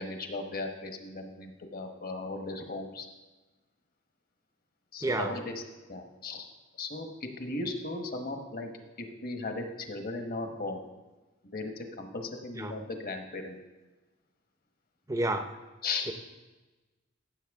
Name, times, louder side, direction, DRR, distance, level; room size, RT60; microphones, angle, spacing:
voice 1, 0.0-3.1 4.9-5.6 5.9-6.5 6.8-8.7 9.0-10.8 11.5-13.6 15.8-16.1, left 3 dB, 50° left, 5 dB, 1.1 m, -37 dB
voice 2, 5.0-5.3 12.6-12.7 15.1-15.5 16.1-16.2, right 2 dB, 15° right, 7 dB, 0.6 m, -29 dB
15.0 x 7.3 x 3.6 m, 1.2 s
head